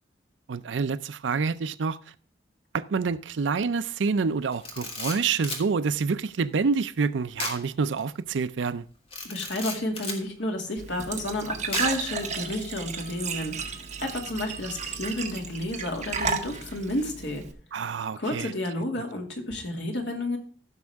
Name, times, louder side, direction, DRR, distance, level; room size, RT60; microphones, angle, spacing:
voice 1, 0.5-2.1 2.7-8.8 17.7-18.5, right 5 dB, 85° right, 0.5 m, -27 dB
Camera, 4.5-5.7 7.4-7.6 8.0-8.1 9.1-10.2 11.7-12.1, left 3 dB, 30° left, 2.1 m, -34 dB
voice 2, 9.2-17.4 18.2-20.4, left 1 dB, 75° left, 2.4 m, -31 dB
Glass / Trickle dribble / Fill (with liquid), 10.8-17.5, right 5 dB, 40° right, 1.3 m, -33 dB
15.0 x 6.3 x 3.5 m
head